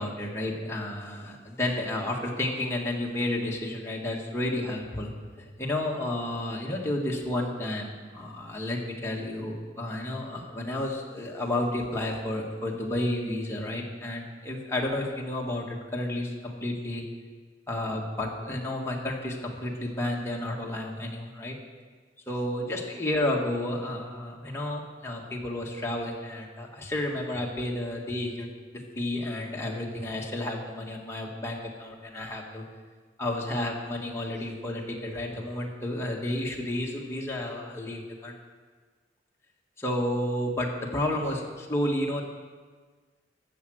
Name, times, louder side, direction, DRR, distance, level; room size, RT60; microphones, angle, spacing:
voice 1, 0.0-5.1 5.6-17.0 17.7-21.6 22.3-32.6 33.2-38.3 39.8-42.2, left 1 dB, 15° left, -2 dB, 1.8 m, -31 dB
14.0 x 7.5 x 6.4 m, 1.5 s
head